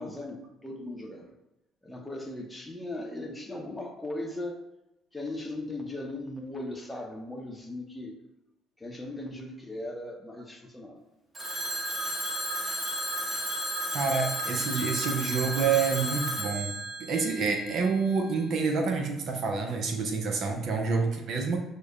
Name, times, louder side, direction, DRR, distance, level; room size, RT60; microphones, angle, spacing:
voice 1, 0.0-1.3 1.8-4.6 5.1-8.2 8.8-11.0, left 1 dB, 15° left, 1 dB, 0.8 m, -38 dB
Telephone, 11.3-18.2, equal, 30° right, 1.1 m, -33 dB
voice 2, 13.9-16.7 17.0-21.6, right 5 dB, 60° right, 4 dB, 0.6 m, -28 dB
6.2 x 2.1 x 2.3 m, 0.93 s
hypercardioid pair, 55°, 0 cm